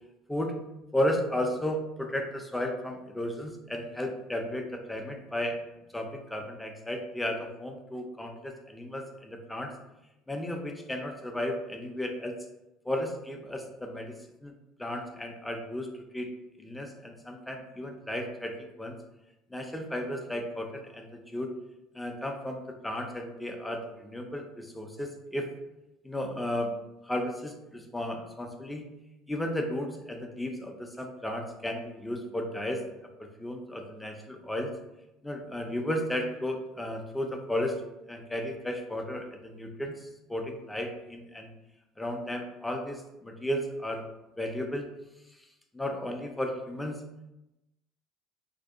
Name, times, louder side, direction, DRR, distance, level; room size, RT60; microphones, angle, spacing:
voice 1, 0.9-5.6 5.9-9.7 10.3-12.4 12.9-14.1 14.4-14.5 14.8-15.9 16.1-16.3 16.6-19.0 19.5-21.5 21.9-25.5 26.0-26.7 27.0-28.8 29.3-32.8 33.2-34.7 35.2-37.8 38.1-41.5 42.0-44.0 44.4-44.9 45.7-47.0, left 1 dB, 5° left, 3 dB, 0.3 m, -34 dB
2.6 x 2.0 x 2.3 m, 0.94 s
cardioid pair, 120°, 0 cm